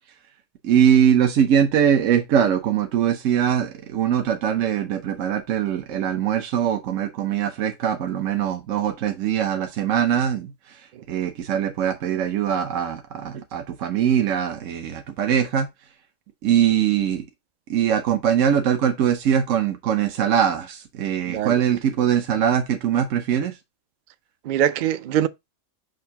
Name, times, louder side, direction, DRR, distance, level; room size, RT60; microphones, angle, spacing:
voice 1, 0.6-15.7 16.4-17.2 17.7-23.6, right 9 dB, 80° right, 1.1 m, -22 dB
voice 2, 21.3-21.6 24.5-25.3, right 11 dB, 60° right, 0.5 m, -23 dB
6.5 x 2.6 x 5.6 m
omnidirectional pair, 1.3 m